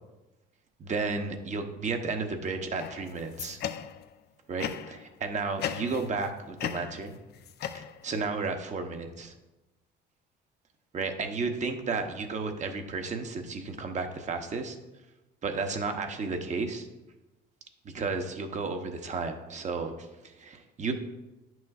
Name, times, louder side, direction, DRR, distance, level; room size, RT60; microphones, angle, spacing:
voice 1, 0.8-3.6 4.5-7.2 7.7-9.3 10.9-14.8 15.4-16.9 17.8-19.9 20.2-20.9, right 4 dB, 35° right, 6 dB, 0.9 m, -33 dB
sound 1, 2.8-4.1 4.6-5.1 5.6-6.3 6.6-8.3, left 9 dB, 55° left, 0.5 m, -37 dB
10.5 x 6.2 x 2.4 m, 1.0 s
cardioid pair, 120°, 20 cm